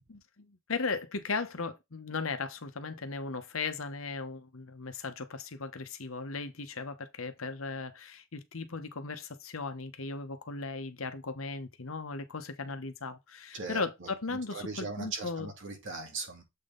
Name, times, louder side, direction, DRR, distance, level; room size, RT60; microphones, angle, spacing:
voice 1, 0.1-15.5, left 4 dB, 80° left, 1.0 m, -37 dB
voice 2, 14.5-16.4, right 3 dB, 65° right, 2.3 m, -38 dB
7.7 x 3.7 x 3.8 m
head